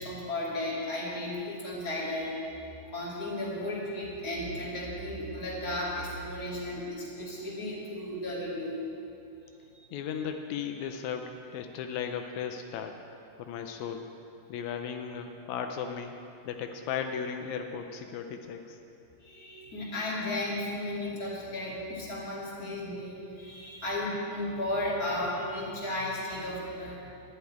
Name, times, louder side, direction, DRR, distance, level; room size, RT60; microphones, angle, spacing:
voice 1, 0.0-2.5 2.8-8.8 9.7-9.9 19.2-27.1, left 1 dB, 30° left, -6 dB, 2.5 m, -34 dB
voice 2, 9.9-12.9 13.4-14.1 14.5-16.1 16.4-18.8, left 7 dB, 90° left, 5 dB, 1.6 m, -36 dB
11.5 x 6.7 x 9.1 m, 2.7 s
omnidirectional pair, 4.0 m